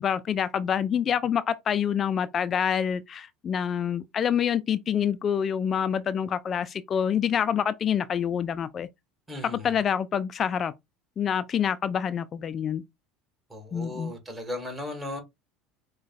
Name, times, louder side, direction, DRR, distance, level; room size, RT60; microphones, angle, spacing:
voice 1, 0.0-8.9 9.5-10.7 11.2-12.8 13.7-14.1, left 8 dB, 40° left, 0.3 m, -27 dB
voice 2, 9.3-9.8 13.5-15.2, left 1 dB, 15° right, 1.8 m, -36 dB
6.2 x 2.2 x 2.5 m
hypercardioid pair, 90°, 0 cm